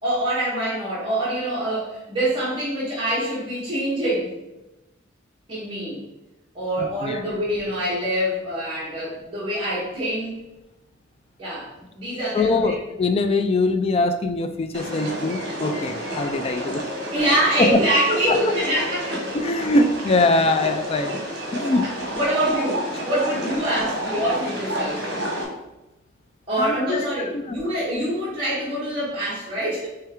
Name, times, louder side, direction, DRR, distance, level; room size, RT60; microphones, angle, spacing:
voice 1, 0.0-4.3 5.5-6.0 6.5-10.4 11.4-12.7 17.1-19.3 22.1-25.0 26.5-29.9, right 1 dB, 25° right, -9 dB, 1.3 m, -25 dB
voice 2, 6.8-7.2 12.3-16.8 17.2-17.3 17.6-17.8 18.3-18.4 19.3-21.2 21.5-21.9 26.6-27.0 27.3-27.6, left 2 dB, 30° left, 6 dB, 0.3 m, -22 dB
sound 1, 14.7-25.4, equal, 60° right, 1.3 m, -30 dB
4.4 x 3.3 x 3.6 m, 0.98 s
head